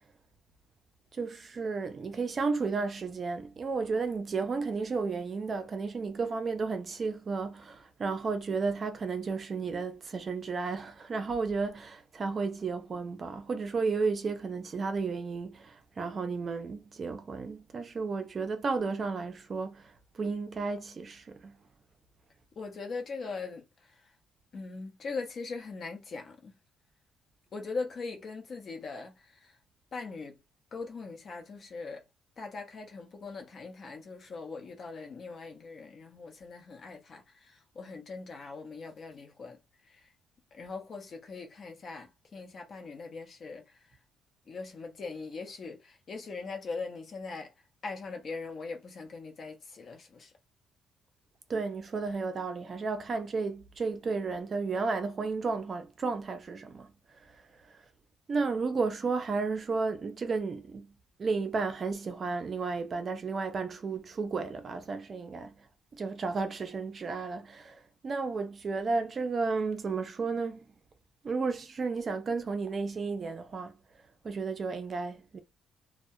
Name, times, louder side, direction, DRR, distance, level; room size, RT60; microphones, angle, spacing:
voice 1, 1.1-21.5 51.5-56.9 57.2-57.8 58.3-60.9 61.2-65.5 65.9-70.7 71.2-73.7 74.2-75.4, right 4 dB, 40° right, 0.4 m, -33 dB
voice 2, 22.6-23.6 24.5-26.5 27.5-29.5 29.9-30.4 30.7-32.0 32.4-39.6 39.8-40.0 40.5-43.6 44.5-47.5 47.8-50.3, left 4 dB, 45° left, 0.8 m, -41 dB
2.2 x 2.1 x 2.7 m
cardioid pair, 115°, 0 cm